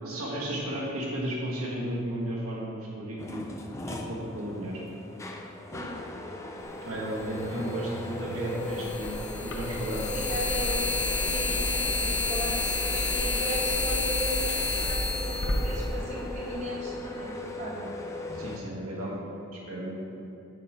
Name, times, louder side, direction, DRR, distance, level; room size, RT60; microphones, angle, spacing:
voice 1, 0.0-3.4 3.9-4.8 6.8-10.1 18.3-19.9, right 1 dB, 80° right, -4 dB, 1.4 m, -34 dB
sound 1, 3.2-18.6, left 2 dB, 15° left, 0.3 m, -38 dB
sound 2, 7.2-7.3 8.6-16.6, left 3 dB, 55° left, 0.8 m, -29 dB
voice 2, 10.0-10.9 11.2-17.9, equal, 30° right, -5 dB, 0.9 m, -36 dB
6.6 x 5.0 x 4.2 m, 2.7 s
head